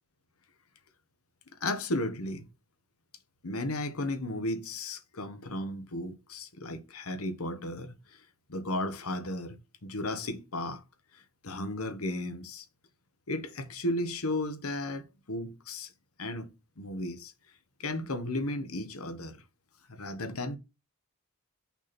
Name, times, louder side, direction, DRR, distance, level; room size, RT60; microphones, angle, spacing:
voice 1, 1.6-2.5 3.4-7.9 8.5-10.8 11.1-12.6 13.3-15.9 16.2-17.3 17.8-19.4 19.9-20.6, left 1 dB, 85° left, 1.2 m, -34 dB
5.9 x 4.3 x 4.3 m
head